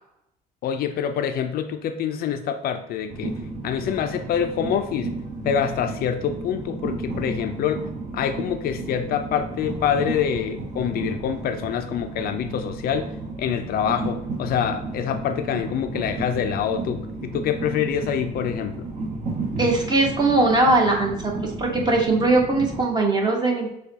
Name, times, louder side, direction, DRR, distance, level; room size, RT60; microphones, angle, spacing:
voice 1, 0.6-3.3 3.6-5.1 5.4-7.9 8.1-18.9, left 8 dB, 65° left, 8 dB, 0.4 m, -26 dB
Train, 3.1-22.8, right 3 dB, 45° right, 1.1 m, -33 dB
voice 2, 19.6-21.3 21.6-23.7, right 2 dB, 25° right, 0 dB, 1.2 m, -20 dB
6.6 x 2.3 x 2.8 m, 0.83 s
cardioid pair, 110°, 17 cm